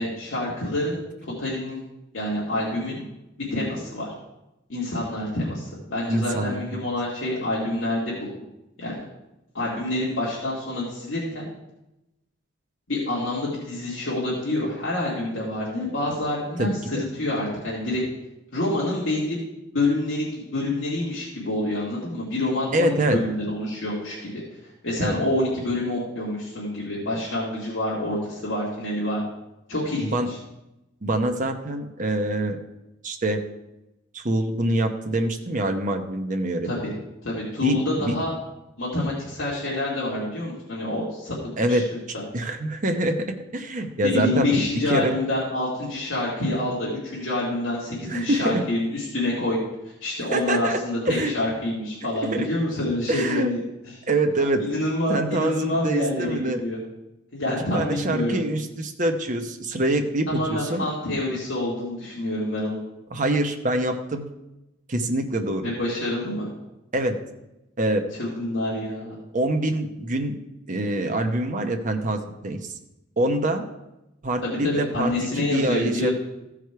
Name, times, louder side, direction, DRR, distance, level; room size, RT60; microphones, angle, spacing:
voice 1, 0.0-1.8 2.1-3.0 3.5-4.1 4.7-8.3 8.8-9.0 9.5-11.5 12.9-18.0 18.5-19.4 19.7-24.4 24.8-29.2 29.7-30.4 36.6-36.8 37.2-38.3 38.8-41.8 44.0-49.6 50.0-53.6 54.6-56.8 57.3-58.4 60.3-62.8 65.6-66.5 68.2-69.1 74.4-76.1, left 1 dB, 65° left, -8 dB, 2.3 m, -27 dB
voice 2, 6.1-6.6 16.6-16.8 22.7-23.2 25.0-25.2 30.0-30.3 31.0-32.6 33.0-33.4 34.1-36.7 37.6-38.1 41.6-41.9 42.3-44.5 44.9-45.2 48.1-48.6 50.3-50.8 51.1-51.3 52.1-52.5 53.1-53.5 54.1-54.6 55.1-56.6 57.7-60.9 63.1-64.3 64.9-65.7 66.9-67.2 67.8-68.0 69.3-70.4 70.7-72.7 73.2-73.6 74.2-76.1, right 1 dB, 40° right, 4 dB, 0.9 m, -25 dB
14.5 x 4.9 x 4.6 m, 0.92 s
head